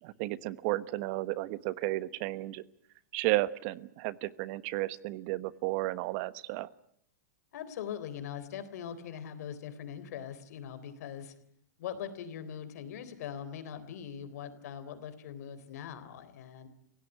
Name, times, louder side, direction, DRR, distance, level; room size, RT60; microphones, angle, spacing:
voice 1, 0.0-2.6 3.1-6.7, right 18 dB, 50° right, 16 dB, 1.3 m, -33 dB
voice 2, 7.5-11.3 11.8-16.7, left 8 dB, 70° left, 11 dB, 3.8 m, -41 dB
29.5 x 17.0 x 9.3 m, 0.73 s
hypercardioid pair, 125°, 9 cm